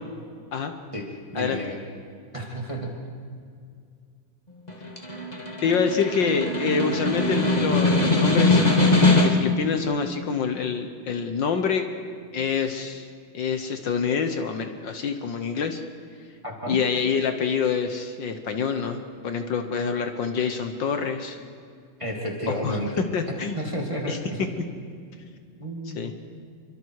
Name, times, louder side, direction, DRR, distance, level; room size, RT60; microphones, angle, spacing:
voice 1, 1.3-1.8 2.3-3.0 16.4-16.8 22.0-24.5 25.6-26.1, equal, 15° right, -1 dB, 2.5 m, -31 dB
Snare drum, 4.7-9.6, left 2 dB, 20° left, 2.1 m, -21 dB
voice 2, 5.6-11.9 12.3-13.1 13.3-15.8 16.7-21.4 22.5-23.6 24.1-24.2 26.0-26.1, left 6 dB, 65° left, 7 dB, 1.8 m, -26 dB
27.5 x 24.5 x 4.8 m, 2.2 s
omnidirectional pair, 2.2 m